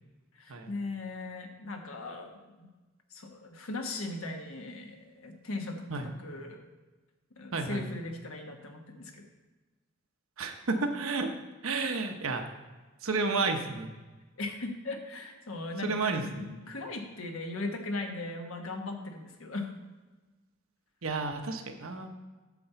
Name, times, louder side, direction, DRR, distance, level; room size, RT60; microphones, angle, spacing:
voice 1, 0.3-2.7 3.1-6.6 7.3-9.3 14.4-19.7, left 2 dB, 90° left, 3 dB, 1.3 m, -38 dB
voice 2, 7.5-7.8 10.4-11.3 11.6-12.4 13.0-13.9 15.8-16.5 21.0-22.1, right 3 dB, 85° right, 5 dB, 1.0 m, -31 dB
8.5 x 4.3 x 6.9 m, 1.2 s
head